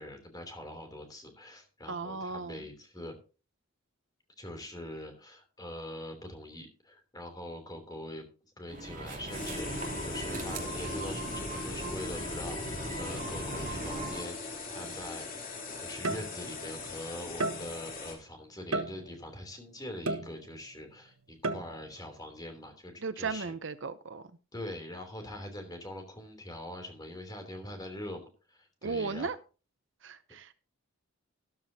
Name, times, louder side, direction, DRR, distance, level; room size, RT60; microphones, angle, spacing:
voice 1, 0.0-3.1 4.4-8.2 8.6-14.3 14.7-15.3 15.6-23.5 24.5-29.3, left 1 dB, 20° left, 5 dB, 3.0 m, -43 dB
voice 2, 1.9-2.6 23.0-24.2 28.8-29.4 30.0-30.5, right 4 dB, 60° right, 13 dB, 0.7 m, -36 dB
sound 1, 8.7-14.2, right 1 dB, 35° right, 2.7 m, -39 dB
sound 2, 9.3-18.1, left 3 dB, 40° left, 3.1 m, -40 dB
sound 3, 14.8-15.0 16.0-16.7 17.4-18.0 18.7-19.3 20.1-20.7 21.4-22.0, right 2 dB, 80° right, 1.3 m, -34 dB
13.5 x 12.0 x 2.8 m, 0.34 s
head